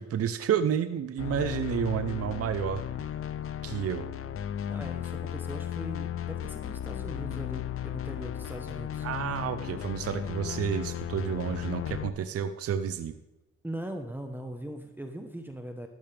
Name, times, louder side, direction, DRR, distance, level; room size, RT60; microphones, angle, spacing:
voice 1, 0.0-2.8 3.6-4.1 9.0-13.2, right 8 dB, 50° right, 10 dB, 0.7 m, -30 dB
sound 1, 1.2-12.1, left 10 dB, 45° left, 0.6 m, -35 dB
voice 2, 4.7-9.1 13.6-15.9, right 1 dB, 5° right, 5 dB, 1.0 m, -40 dB
12.5 x 11.5 x 3.4 m, 1.0 s
cardioid pair, 90°, 30 cm